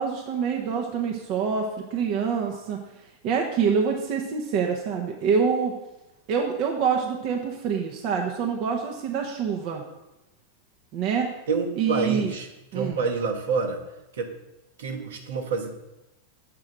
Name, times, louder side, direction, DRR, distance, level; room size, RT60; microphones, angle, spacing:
voice 1, 0.0-2.8 3.2-5.7 6.3-9.8 10.9-11.3 11.8-12.3 12.7-13.0, right 6 dB, 45° right, 1 dB, 0.8 m, -26 dB
voice 2, 11.5-12.5 12.7-13.8 14.1-14.3 14.8-15.8, right 4 dB, 60° right, 4 dB, 1.1 m, -27 dB
7.6 x 4.8 x 6.4 m, 0.97 s
figure-of-eight pair, 90°, 0 cm